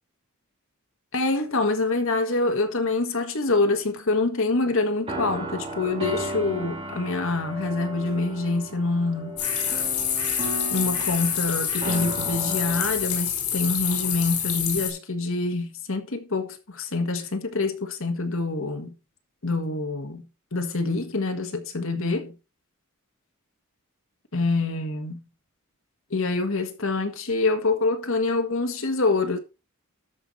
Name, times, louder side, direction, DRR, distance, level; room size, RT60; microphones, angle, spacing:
voice 1, 1.1-9.4 10.7-18.9 19.4-20.3 20.5-22.3 24.3-25.2 26.1-29.4, left 3 dB, 65° left, 1.7 m, -26 dB
sound 1, 5.0-13.5, right 1 dB, 25° right, 2.5 m, -35 dB
sound 2, 9.4-14.9, left 8 dB, 85° left, 4.2 m, -27 dB
sound 3, 9.4-9.9 10.1-10.6 10.9-11.4 11.7-12.2, left 1 dB, 25° left, 4.1 m, -40 dB
13.0 x 5.5 x 4.2 m
head